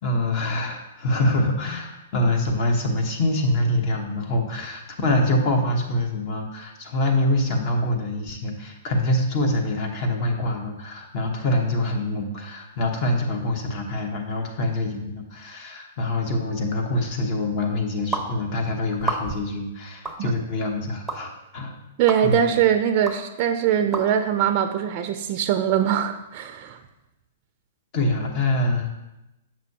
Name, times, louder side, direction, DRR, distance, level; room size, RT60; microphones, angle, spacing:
voice 1, 0.0-21.8 22.2-22.6 27.9-28.9, left 1 dB, 40° left, 3 dB, 1.1 m, -25 dB
sound 1, 18.1-18.3 19.0-19.5 20.1-20.2 21.1-21.2 22.1-22.2 23.1-23.2 23.9-24.1, right 3 dB, 5° right, 0.7 m, -28 dB
voice 2, 22.0-26.8, right 9 dB, 40° right, 7 dB, 0.4 m, -22 dB
7.5 x 6.0 x 2.8 m, 0.94 s
hypercardioid pair, 135°, 0 cm